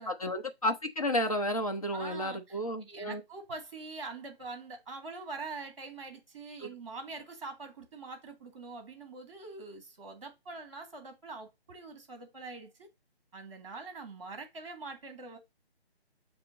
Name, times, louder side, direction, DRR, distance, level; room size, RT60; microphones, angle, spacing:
voice 1, 0.1-3.2 6.6-6.7, left 1 dB, 35° left, 0.8 m, -32 dB
voice 2, 1.9-2.6 2.9-12.9 13.3-15.4, right 3 dB, 30° right, 1.6 m, -44 dB
6.6 x 2.9 x 4.9 m
hypercardioid pair, 175°, 32 cm